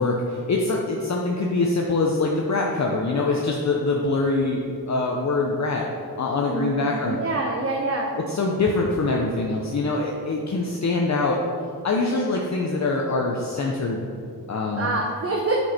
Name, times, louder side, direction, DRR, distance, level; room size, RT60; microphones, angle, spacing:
voice 1, 0.0-5.9 6.2-7.2 8.3-11.4 11.8-14.1 14.5-14.9, left 3 dB, 45° left, -1 dB, 0.7 m, -24 dB
voice 2, 6.5-8.1 14.8-15.6, right 2 dB, 35° right, -1 dB, 0.9 m, -26 dB
8.0 x 6.1 x 4.3 m, 2.4 s
wide cardioid pair, 100°, 39 cm